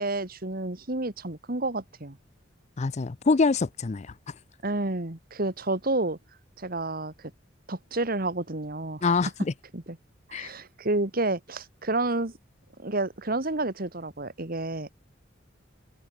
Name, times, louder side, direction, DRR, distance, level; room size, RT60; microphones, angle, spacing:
voice 1, 0.0-2.2 4.6-6.2 6.6-7.3 7.7-9.1 9.7-10.0 10.3-12.3 12.8-14.9, right 2 dB, 50° right, 2.1 m, -30 dB
voice 2, 2.8-4.1 9.0-9.5 10.3-10.5, left 4 dB, 35° left, 0.5 m, -25 dB
head